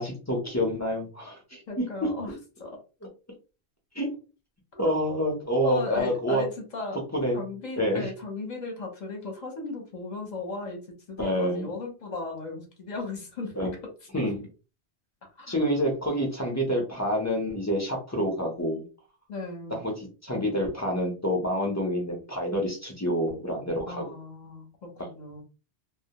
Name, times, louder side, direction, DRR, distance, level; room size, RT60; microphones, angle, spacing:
voice 1, 0.0-2.1 3.9-4.1 4.8-6.4 7.1-7.4 7.8-8.1 11.2-11.7 13.6-13.7 14.1-14.4 15.5-18.8 19.7-24.0, equal, 20° left, 0 dB, 0.5 m, -27 dB
voice 2, 1.7-2.3 2.6-2.8 4.7-5.0 5.6-7.0 7.3-10.8 11.1-13.5 15.4-15.5 19.3-19.8 23.9-25.4, left 3 dB, 45° left, 2 dB, 0.8 m, -36 dB
2.1 x 2.1 x 2.8 m, 0.33 s
omnidirectional pair, 1.1 m